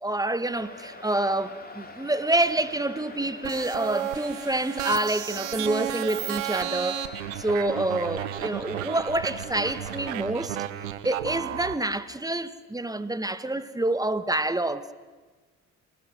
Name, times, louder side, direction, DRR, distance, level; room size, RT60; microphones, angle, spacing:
voice 1, 0.0-7.1 7.3-10.6 11.0-14.9, right 1 dB, 10° right, 1.6 m, -27 dB
sound 1, 0.5-10.2, left 2 dB, 25° left, 3.7 m, -44 dB
sound 2, 3.4-11.7, right 13 dB, 80° right, 1.3 m, -33 dB
28.0 x 20.5 x 8.0 m
hypercardioid pair, 55°, 39 cm